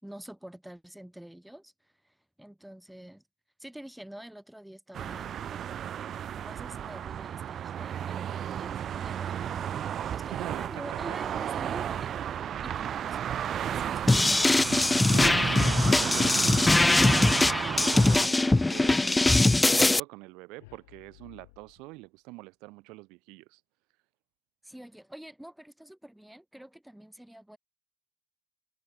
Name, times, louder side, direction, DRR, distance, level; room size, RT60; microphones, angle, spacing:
voice 1, 0.0-3.2 3.6-5.6 6.3-9.7 10.1-14.5 24.6-27.6, right 1 dB, 5° right, 7.1 m, -47 dB
sound 1, 4.9-18.3, right 9 dB, 55° right, 1.7 m, -34 dB
voice 2, 10.3-10.7 11.3-11.4 15.0-17.4 17.8-23.6, right 24 dB, 70° right, 3.8 m, -43 dB
sound 2, 14.1-20.0, left 2 dB, 15° left, 0.5 m, -22 dB
sound 3, 20.6-22.3, left 23 dB, 75° left, 5.7 m, -59 dB
figure-of-eight pair, 50°, 0 cm